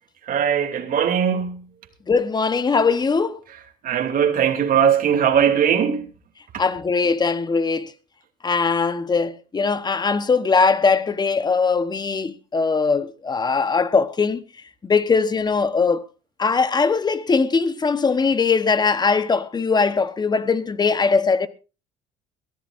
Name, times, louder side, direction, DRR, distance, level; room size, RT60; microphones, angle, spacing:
voice 1, 0.3-1.6 3.8-6.0 6.5-6.6, right 8 dB, 55° right, 2.8 m, -20 dB
voice 2, 2.1-3.4 6.6-7.9 8.4-14.4 14.8-16.0 16.4-21.5, left 4 dB, 25° left, 1.1 m, -20 dB
22.5 x 14.5 x 2.6 m
cardioid pair, 110°, 17 cm